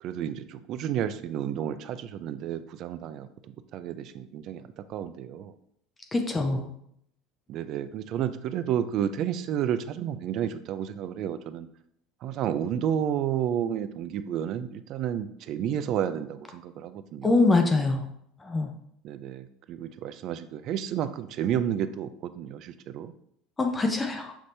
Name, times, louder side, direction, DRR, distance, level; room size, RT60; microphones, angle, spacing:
voice 1, 0.0-3.3 3.7-4.6 4.9-5.5 6.5-6.7 7.5-11.7 12.2-17.4 19.0-23.1, right 9 dB, 50° right, 12 dB, 0.3 m, -31 dB
voice 2, 6.1-6.7 17.2-18.0 18.5-18.7 23.6-24.3, left 3 dB, 15° left, 4 dB, 0.5 m, -24 dB
5.8 x 2.7 x 3.2 m, 0.71 s
supercardioid pair, 130°, 0 cm